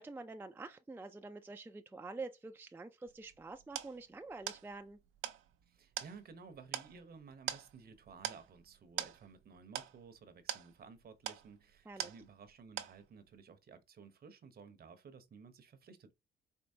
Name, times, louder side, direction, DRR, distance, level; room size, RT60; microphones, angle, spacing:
voice 1, 0.0-5.0 11.9-12.1, right 3 dB, 10° right, 0.4 m, -47 dB
sound 1, 3.1-12.5 12.8-13.3, right 11 dB, 85° right, 0.6 m, -44 dB
voice 2, 5.7-16.1, right 5 dB, 50° right, 0.9 m, -55 dB
4.5 x 2.9 x 2.7 m
cardioid pair, 90°, 20 cm